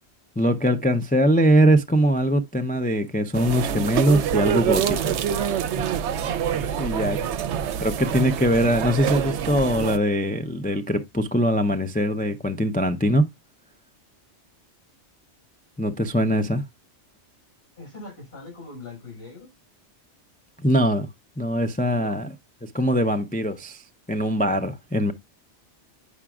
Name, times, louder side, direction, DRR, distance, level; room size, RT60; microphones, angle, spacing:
voice 1, 0.4-5.2 6.8-7.2 7.8-13.2 15.8-16.6 20.6-21.1 21.4-22.3 22.6-23.8 24.1-25.1, equal, 15° left, 0.3 m, -22 dB
sound 1, 3.3-10.0, right 8 dB, 75° right, 0.9 m, -26 dB
voice 2, 6.8-7.4 17.8-19.5 21.9-22.2, left 3 dB, 60° left, 5.9 m, -41 dB
8.5 x 5.9 x 2.4 m
omnidirectional pair, 1.2 m